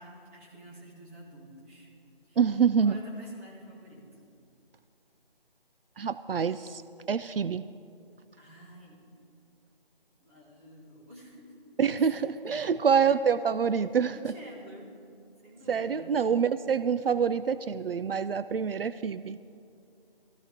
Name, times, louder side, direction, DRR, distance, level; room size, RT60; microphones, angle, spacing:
voice 1, 0.0-1.9 2.2-2.4 2.8-4.2 8.4-9.0 10.2-11.6 12.0-12.2 12.7-13.1 14.1-14.9 15.4-16.2, equal, 15° right, -4 dB, 2.0 m, -49 dB
voice 2, 2.4-3.0 6.0-6.8 7.1-7.7 11.8-14.2 15.7-19.4, right 6 dB, 70° right, 14 dB, 0.5 m, -26 dB
20.5 x 14.5 x 3.7 m, 2.5 s
figure-of-eight pair, 170°, 30 cm